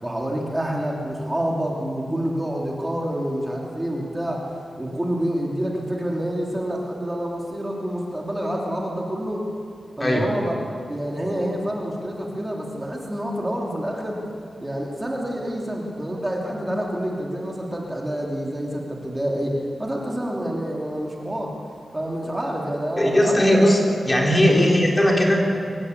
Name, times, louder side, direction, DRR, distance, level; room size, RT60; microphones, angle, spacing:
voice 1, 0.0-4.5 4.8-9.4 10.0-10.6 10.9-14.2 14.6-21.5 21.9-23.6 24.5-24.8, equal, 15° right, -1 dB, 3.1 m, -27 dB
voice 2, 23.0-23.8 24.1-25.5, equal, 20° left, -1 dB, 4.1 m, -18 dB
24.5 x 17.0 x 8.4 m, 2.3 s
wide cardioid pair, 100°, 0 cm